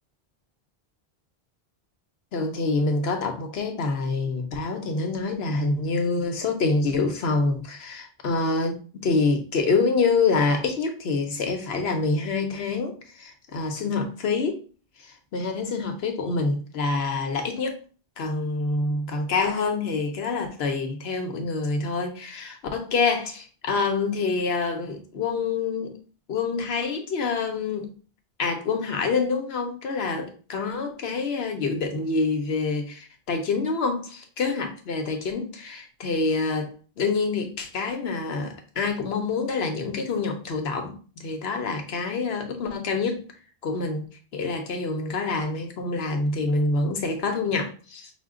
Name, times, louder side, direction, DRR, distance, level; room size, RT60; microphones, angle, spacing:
voice 1, 2.3-8.8 9.0-14.6 15.0-17.8 18.2-26.0 26.3-27.9 28.4-36.7 37.0-43.2 43.6-44.0 44.3-48.1, left 4 dB, 85° left, 1.1 m, -26 dB
5.4 x 2.1 x 3.7 m
omnidirectional pair, 1.0 m